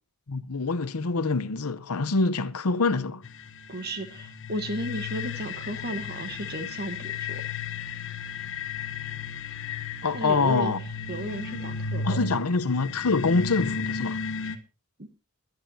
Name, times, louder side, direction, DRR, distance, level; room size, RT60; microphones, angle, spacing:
voice 1, 0.3-3.2 10.0-10.8 12.0-14.2, left 3 dB, 90° left, 0.9 m, -25 dB
sound 1, 3.2-14.6, left 5 dB, 60° left, 1.1 m, -34 dB
voice 2, 3.7-7.4 10.1-10.7 11.1-12.4 14.4-14.6 15.0-15.1, right 1 dB, 45° right, 1.3 m, -34 dB
22.0 x 11.0 x 2.8 m
head